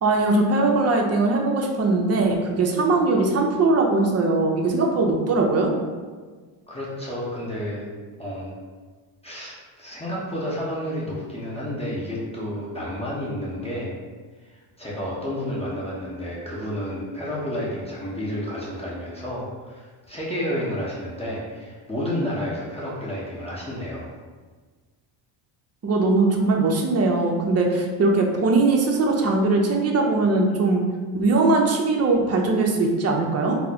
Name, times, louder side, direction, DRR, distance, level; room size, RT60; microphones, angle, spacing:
voice 1, 0.0-5.7 25.8-30.8 31.1-33.6, right 3 dB, 30° right, 1 dB, 0.5 m, -20 dB
voice 2, 6.7-7.9 8.2-8.5 9.2-14.0 14.4-24.1, equal, 10° left, -7 dB, 0.8 m, -31 dB
3.9 x 2.1 x 2.8 m, 1.4 s
cardioid pair, 85°, 50 cm